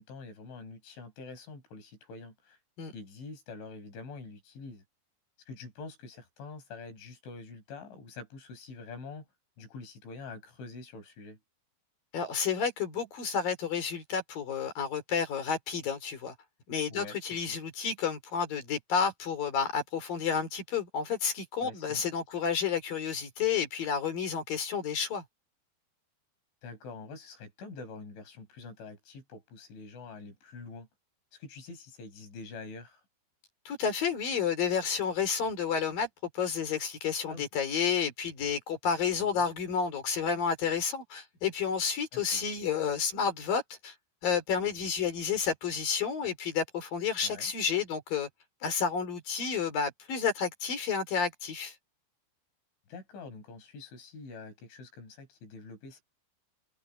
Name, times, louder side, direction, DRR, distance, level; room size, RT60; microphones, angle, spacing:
voice 1, 0.0-2.6 2.9-4.8 5.5-9.3 9.6-11.4 16.9-17.2 17.5-17.6 21.6-22.2 26.6-30.9 31.3-33.0 37.3-37.4 39.2-39.4 42.1-42.4 47.2-47.5 52.9-56.0, left 4 dB, 85° left, 7.8 m, -46 dB
voice 2, 12.1-16.3 16.7-25.2 33.7-36.1 36.3-43.9 44.2-48.3 48.6-51.7, left 6 dB, 50° left, 5.3 m, -30 dB
omnidirectional pair, 5.3 m